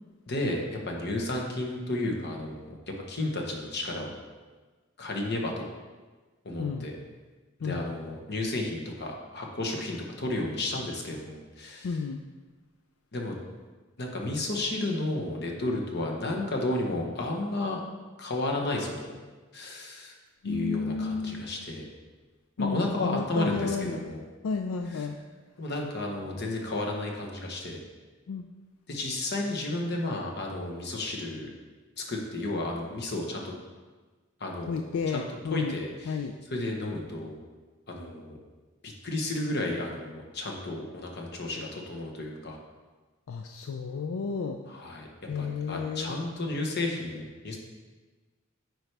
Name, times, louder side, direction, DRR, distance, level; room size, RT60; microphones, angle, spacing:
voice 1, 0.3-2.8 3.1-4.1 5.0-5.7 6.4-7.0 7.6-12.0 13.1-13.3 14.0-17.8 18.2-19.1 19.5-20.1 20.4-21.9 22.6-24.2 24.9-25.1 25.6-27.8 28.9-31.5 32.0-33.5 34.4-35.2 35.5-36.2 36.5-37.4 37.9-38.4 38.8-42.6 44.7-45.1 45.3-47.6, left 2 dB, 50° left, 0 dB, 1.1 m, -32 dB
voice 2, 11.8-12.2 20.4-21.5 22.6-24.1 24.4-25.2 28.3-28.5 34.7-35.8 36.1-36.3 43.3-44.6 45.3-46.3, left 5 dB, 80° left, 5 dB, 0.4 m, -32 dB
8.9 x 4.6 x 3.3 m, 1.3 s
head